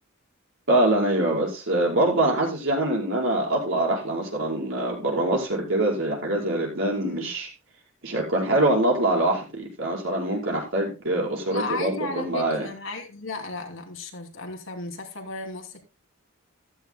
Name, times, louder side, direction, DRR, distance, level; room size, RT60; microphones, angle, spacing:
voice 1, 0.7-7.5 8.0-12.7, right 1 dB, 65° right, -2 dB, 5.4 m, -24 dB
voice 2, 7.0-7.3 11.5-15.8, left 3 dB, 65° left, 3 dB, 2.9 m, -34 dB
15.0 x 13.0 x 2.2 m, 0.27 s
head